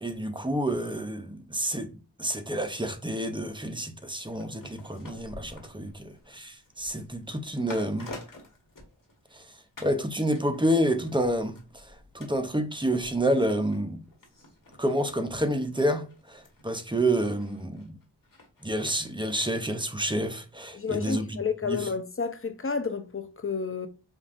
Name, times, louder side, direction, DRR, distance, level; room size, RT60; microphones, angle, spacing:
voice 1, 0.0-1.9 2.2-8.1 9.3-9.4 9.8-14.0 14.8-18.0 18.6-21.3 21.7-21.9, right 1 dB, 10° right, 0.6 m, -29 dB
sound 1, 4.3-9.4 9.8-10.0 10.4-19.5 19.8-19.9, left 2 dB, 55° left, 1.4 m, -49 dB
voice 2, 20.7-23.9, left 5 dB, 35° left, 0.5 m, -30 dB
5.2 x 2.4 x 2.5 m
wide cardioid pair, 65°, 41 cm